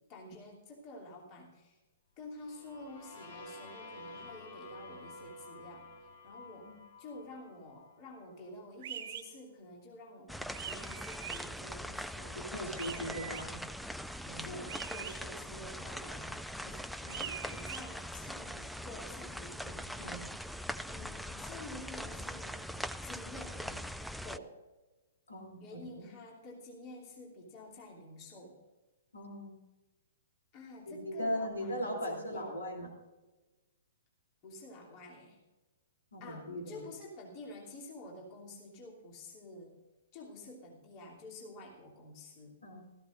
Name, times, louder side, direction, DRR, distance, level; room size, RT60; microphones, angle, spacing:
voice 1, 0.1-1.8 2.2-5.9 6.2-6.7 7.0-12.4 12.9-13.2 14.4-20.5 20.9-22.7 23.0-23.8 24.2-24.5 25.6-28.6 30.5-32.6 34.4-35.4 36.2-39.8 40.1-42.6, left 2 dB, 30° left, -2 dB, 3.1 m, -49 dB
sound 1, 2.3-8.2, left 2 dB, 45° left, 2.6 m, -51 dB
sound 2, 8.8-9.2 10.5-11.4 12.8-13.4 14.7-15.2 17.1-17.8, right 9 dB, 45° right, 1.0 m, -43 dB
sound 3, 10.3-24.4, equal, ahead, 0.3 m, -42 dB
voice 2, 12.5-13.6 14.2-14.6 20.0-20.3 25.3-26.1 29.1-29.5 30.9-32.9 36.1-36.8 42.6-42.8, equal, 70° left, 0 dB, 3.1 m, -39 dB
16.5 x 15.0 x 2.6 m, 1.2 s
figure-of-eight pair, 115°, 0 cm